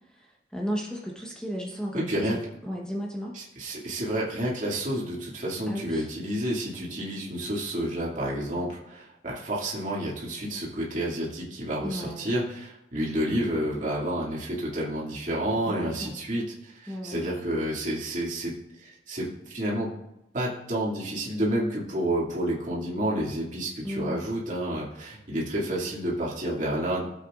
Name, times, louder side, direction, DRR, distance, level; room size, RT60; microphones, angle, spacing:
voice 1, 0.1-3.4 5.7-6.1 11.8-12.3 15.7-16.1 16.9-17.5 23.8-24.3, equal, 5° left, -2 dB, 1.1 m, -35 dB
voice 2, 1.9-2.4 3.3-18.5 18.8-19.9 20.3-27.0, right 1 dB, 45° right, -4 dB, 2.3 m, -30 dB
15.5 x 7.7 x 2.5 m, 0.87 s
head